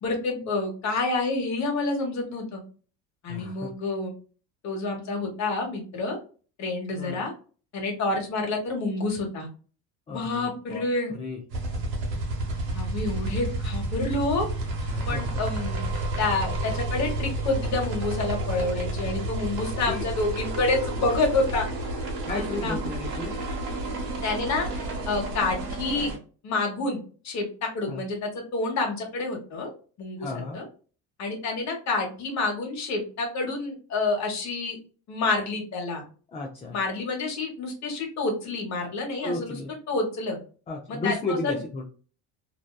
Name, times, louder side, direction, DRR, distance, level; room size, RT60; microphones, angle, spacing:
voice 1, 0.0-2.6 3.2-4.1 4.6-6.2 6.6-7.3 7.7-9.5 10.1-11.1 12.7-14.5 15.1-15.9 16.2-21.7 22.3-22.8 24.2-24.7 25.1-26.1 26.4-29.7 30.0-30.6 31.2-34.8 35.1-36.0 36.7-39.6 39.9-40.4 40.9-41.6, left 3 dB, 45° left, 1 dB, 1.1 m, -28 dB
voice 2, 3.3-3.7 6.9-7.2 10.1-10.9 11.1-11.4 14.9-15.3 19.9-20.1 22.3-23.3 27.9-28.0 30.2-30.6 36.3-36.8 39.2-39.7 40.7-41.9, left 3 dB, 20° left, 0 dB, 0.3 m, -33 dB
sound 1, 11.5-26.2, right 2 dB, 75° right, 1.1 m, -30 dB
2.7 x 2.2 x 2.2 m, 0.38 s
cardioid pair, 130°, 38 cm